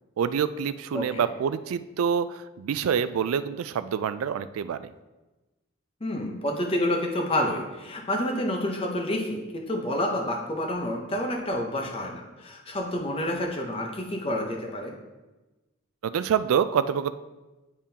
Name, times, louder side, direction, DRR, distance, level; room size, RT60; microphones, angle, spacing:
voice 1, 0.2-4.9 16.0-17.1, right 7 dB, 85° right, 13 dB, 0.3 m, -26 dB
voice 2, 0.9-1.3 6.0-14.9, left 1 dB, 25° left, 1 dB, 0.7 m, -29 dB
10.0 x 3.6 x 2.8 m, 1.1 s
head